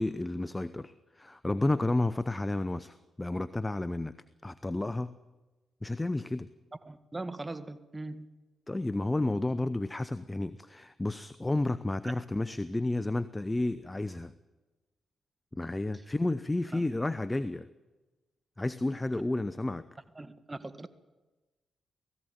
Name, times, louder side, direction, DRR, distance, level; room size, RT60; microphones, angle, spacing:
voice 1, 0.0-4.1 4.4-5.1 5.8-6.5 8.7-14.3 15.5-17.7 18.6-19.8, left 2 dB, 20° left, 14 dB, 0.8 m, -31 dB
voice 2, 6.9-8.3 12.0-12.2 16.7-16.9 20.2-20.9, right 2 dB, 25° right, 10 dB, 1.8 m, -40 dB
18.5 x 15.5 x 9.6 m, 1.2 s
hypercardioid pair, 40°, 0 cm